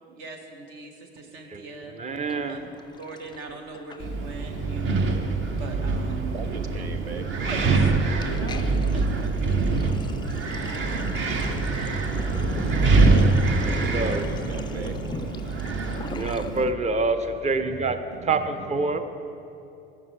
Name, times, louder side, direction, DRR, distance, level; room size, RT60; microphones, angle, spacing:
voice 1, 0.1-2.0 2.5-2.6 3.0-5.2 5.6-6.4 7.5-7.9 8.2-9.3 10.4-10.5, right 3 dB, 60° right, 4 dB, 1.4 m, -39 dB
voice 2, 1.5-2.7 13.6-14.3 16.1-19.0, right 3 dB, 20° right, 9 dB, 0.8 m, -27 dB
Sink (filling or washing), 2.3-4.5 4.7-5.0 5.3-16.7, left 5 dB, 15° left, 0.3 m, -39 dB
Wind, 4.0-16.6, right 3 dB, 40° right, 1.0 m, -24 dB
voice 3, 6.3-7.4 12.9-15.2, right 4 dB, 85° right, 9 dB, 0.6 m, -40 dB
14.5 x 11.0 x 3.3 m, 2.7 s
figure-of-eight pair, 60°, 31 cm